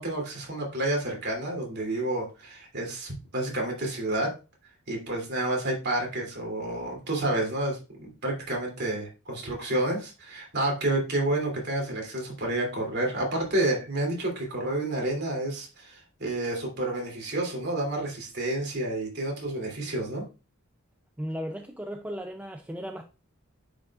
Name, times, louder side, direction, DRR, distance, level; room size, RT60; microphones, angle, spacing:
voice 1, 0.0-4.3 4.9-20.2, right 1 dB, 50° right, 2.8 m, -30 dB
voice 2, 21.2-23.0, equal, 5° right, 0.4 m, -35 dB
9.3 x 5.3 x 2.4 m
head